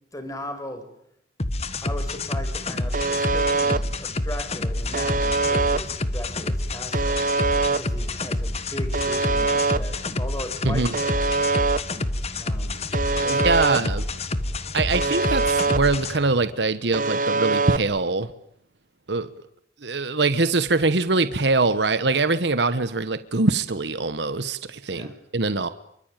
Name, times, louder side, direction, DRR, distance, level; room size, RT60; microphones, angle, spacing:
voice 1, 0.1-0.8 1.8-7.2 7.7-11.2 12.4-12.8 13.1-13.4 24.9-25.2, left 1 dB, 20° left, 7 dB, 5.4 m, -37 dB
sound 1, 1.4-16.2, left 2 dB, 35° left, 1.4 m, -28 dB
sound 2, 2.5-16.5, equal, 5° right, 2.8 m, -45 dB
Alarm, 2.9-3.8 4.9-5.8 6.9-7.8 8.9-9.8 10.9-11.8 12.9-13.8 14.9-15.8 16.9-17.8, right 3 dB, 45° right, 1.2 m, -23 dB
voice 2, 13.3-14.0 14.7-18.3 19.1-19.3 19.8-25.7, right 3 dB, 75° right, 12 dB, 1.2 m, -23 dB
27.0 x 24.0 x 9.1 m, 0.72 s
head